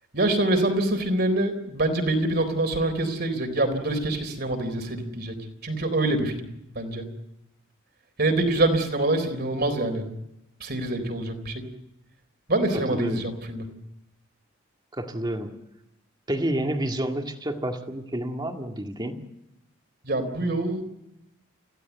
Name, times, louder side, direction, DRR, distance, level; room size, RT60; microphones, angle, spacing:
voice 1, 0.1-5.4 5.6-6.5 6.8-7.0 8.2-10.1 10.6-11.6 12.5-13.7 20.0-20.8, right 2 dB, 50° right, 6 dB, 3.8 m, -25 dB
voice 2, 12.7-13.3 14.9-15.5 16.3-19.2, right 1 dB, 20° right, 4 dB, 2.0 m, -29 dB
27.0 x 16.0 x 8.2 m, 0.86 s
head